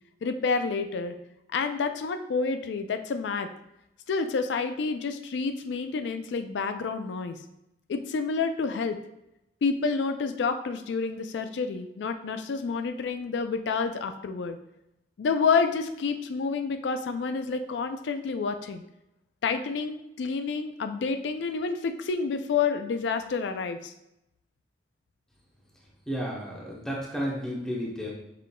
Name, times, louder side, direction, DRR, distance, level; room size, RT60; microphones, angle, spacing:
voice 1, 0.2-1.2 1.5-3.5 4.1-7.4 7.9-9.0 9.6-14.6 15.2-18.8 19.4-23.9, left 5 dB, 85° left, 8 dB, 0.4 m, -29 dB
voice 2, 26.1-28.1, equal, 5° left, -4 dB, 0.9 m, -32 dB
5.6 x 3.6 x 2.2 m, 0.86 s
head